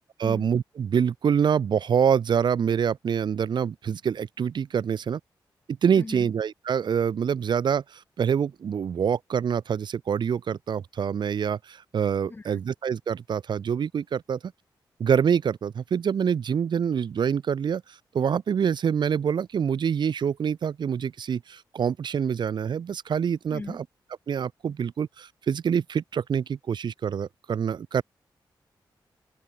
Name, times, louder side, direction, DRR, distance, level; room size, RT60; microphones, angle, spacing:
voice 1, 0.2-5.2 5.8-14.4 15.0-17.8 18.1-23.8 24.3-28.0, right 7 dB, 70° right, 5.2 m, -26 dB
voice 2, 6.0-6.3 12.3-12.6 23.5-23.8, left 3 dB, 25° left, 6.0 m, -38 dB
open air
wide cardioid pair, 150°, 8 cm